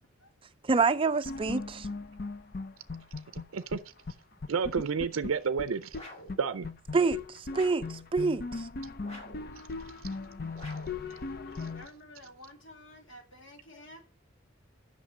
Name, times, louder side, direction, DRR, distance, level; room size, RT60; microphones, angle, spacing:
voice 1, 0.6-1.9 6.9-8.7, right 4 dB, 25° right, 0.4 m, -27 dB
sound 1, 1.2-3.8 4.1-4.2 4.4-6.0 6.3-6.4 6.6-11.9, left 3 dB, 50° left, 0.6 m, -38 dB
voice 2, 3.3-3.8 4.5-6.0 6.4-6.7, right 5 dB, 90° right, 0.5 m, -30 dB
sound 2, 5.9-6.4 7.5-8.0 9.0-9.5 10.5-11.0, left 1 dB, 30° left, 2.0 m, -47 dB
voice 3, 11.0-14.0, left 1 dB, 65° left, 2.1 m, -52 dB
8.5 x 6.1 x 6.2 m
head